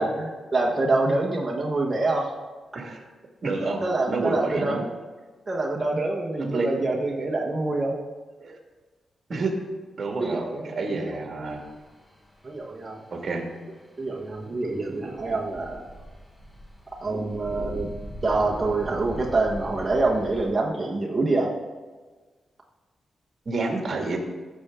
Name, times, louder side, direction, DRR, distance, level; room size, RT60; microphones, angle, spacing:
voice 1, 0.0-2.4 3.8-4.9 5.5-8.0 10.2-11.1 12.4-13.0 14.0-15.8 17.0-17.9 18.2-21.5, right 2 dB, 20° right, -2 dB, 1.2 m, -26 dB
voice 2, 2.7-3.0 3.4-4.8 6.4-6.7 8.4-8.6 9.3-9.5 10.0-11.6 13.1-13.4 23.5-24.2, right 3 dB, 45° right, 2 dB, 2.0 m, -29 dB
sound 1, 11.5-20.5, equal, 10° left, 1.1 m, -42 dB
15.5 x 6.9 x 3.7 m, 1.3 s
wide cardioid pair, 150°, 0 cm